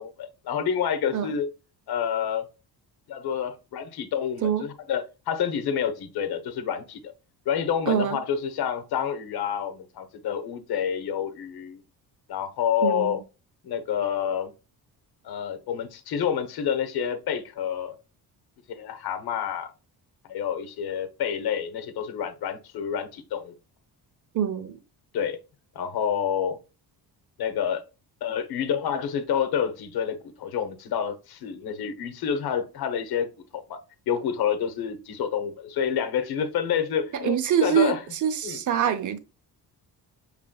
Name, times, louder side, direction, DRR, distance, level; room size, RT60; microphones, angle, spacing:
voice 1, 0.0-1.5 1.9-2.4 3.1-7.1 7.5-11.8 12.3-13.2 13.6-14.5 15.2-17.9 18.7-19.7 20.3-23.5 25.1-25.4 25.7-26.6 27.4-27.8 28.2-33.3 33.5-33.8 34.1-38.0 38.4-38.6, left 8 dB, 65° left, 1.0 m, -28 dB
voice 2, 7.9-8.2 12.8-13.2 24.3-24.7 37.1-39.2, right 9 dB, 50° right, 0.8 m, -25 dB
6.5 x 3.3 x 2.3 m
cardioid pair, 175°, 40 cm